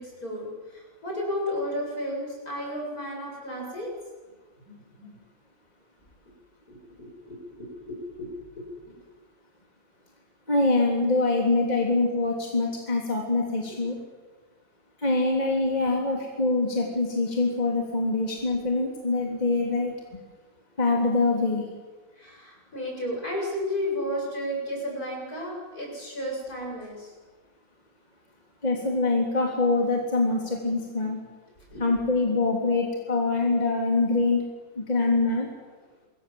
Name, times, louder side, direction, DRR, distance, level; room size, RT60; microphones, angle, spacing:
voice 1, 0.0-3.9 4.6-5.2 6.7-8.3 8.6-9.0 22.2-27.1 31.7-31.8, left 1 dB, 50° left, -1 dB, 8.4 m, -33 dB
voice 2, 10.5-14.0 15.0-20.2 20.8-21.7 28.6-31.2 31.8-34.4 34.7-35.5, left 3 dB, 20° left, 0 dB, 3.2 m, -24 dB
26.5 x 21.5 x 7.7 m, 1.4 s
omnidirectional pair, 2.0 m